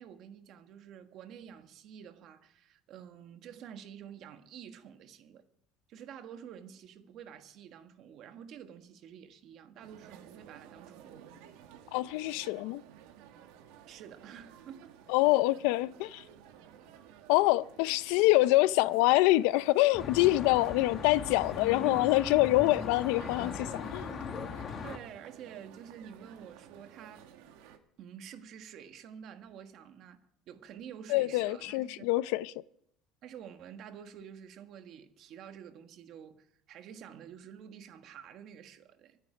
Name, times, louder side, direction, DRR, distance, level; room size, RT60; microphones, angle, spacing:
voice 1, 0.0-5.4 5.9-11.2 13.9-15.0 24.8-27.3 28.0-30.2 30.5-31.9 33.2-39.2, right 8 dB, 45° right, 1.4 m, -49 dB
sound 1, 9.8-27.8, right 9 dB, 80° right, 1.7 m, -54 dB
voice 2, 11.9-12.8 15.1-16.2 17.3-24.2 31.1-32.5, left 18 dB, 75° left, 0.5 m, -25 dB
Traffic noise roadway noise, 19.9-25.0, left 6 dB, 30° left, 1.5 m, -39 dB
24.0 x 8.9 x 5.0 m
cardioid pair, 155°, 0 cm